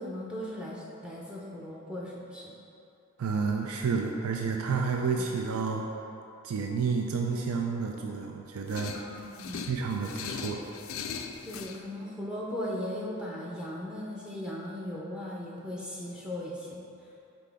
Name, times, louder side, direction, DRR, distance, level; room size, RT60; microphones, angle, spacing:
voice 1, 0.0-2.6 8.9-9.7 11.4-16.9, left 1 dB, 5° right, -4 dB, 0.5 m, -38 dB
voice 2, 3.2-5.8 6.4-9.0 9.7-10.6, right 5 dB, 85° right, 1 dB, 0.4 m, -30 dB
sound 1, 8.7-11.8, left 6 dB, 70° left, 0.4 m, -39 dB
6.0 x 4.7 x 3.4 m, 2.7 s
head